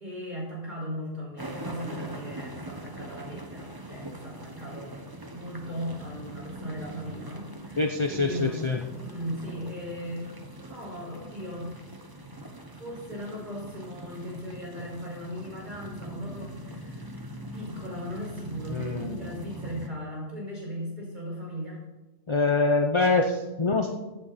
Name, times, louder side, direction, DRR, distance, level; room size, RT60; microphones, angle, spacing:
voice 1, 0.0-5.0 5.3-11.7 12.7-21.8, equal, 35° right, -4 dB, 5.5 m, -38 dB
sound 1, 1.4-19.9, right 1 dB, 20° right, 1.1 m, -42 dB
voice 2, 7.8-8.8 18.7-19.3 22.3-23.9, left 3 dB, 30° left, 4 dB, 0.6 m, -25 dB
15.5 x 9.1 x 4.2 m, 1.1 s
omnidirectional pair, 1.4 m